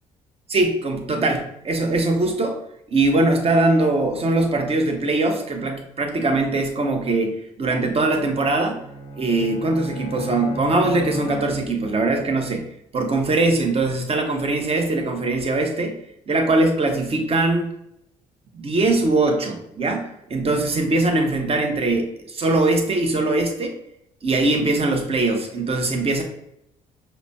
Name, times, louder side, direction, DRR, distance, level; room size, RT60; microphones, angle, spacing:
voice 1, 0.5-2.6 2.9-8.8 9.2-16.0 16.3-17.7 18.5-23.8 24.2-26.2, right 2 dB, 35° right, 4 dB, 0.8 m, -21 dB
Bowed string instrument, 8.5-12.1, left 2 dB, 35° left, 0.6 m, -34 dB
5.2 x 2.1 x 2.7 m, 0.80 s
hypercardioid pair, 50°, 18 cm